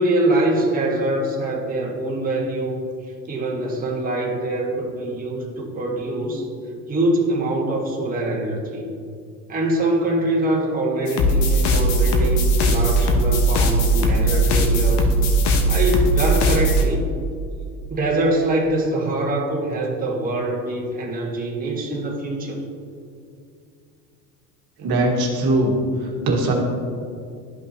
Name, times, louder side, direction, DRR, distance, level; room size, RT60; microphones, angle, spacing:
voice 1, 0.0-2.8 3.3-6.5 6.9-8.9 9.5-15.1 15.7-17.1 17.9-22.6, right 1 dB, 20° right, -3 dB, 1.3 m, -24 dB
sound 1, 11.1-16.8, right 1 dB, 55° left, 1.2 m, -18 dB
voice 2, 24.8-25.7 26.0-26.5, right 1 dB, 50° right, 0 dB, 1.6 m, -20 dB
12.0 x 5.3 x 2.8 m, 2.4 s
hypercardioid pair, 80°, 48 cm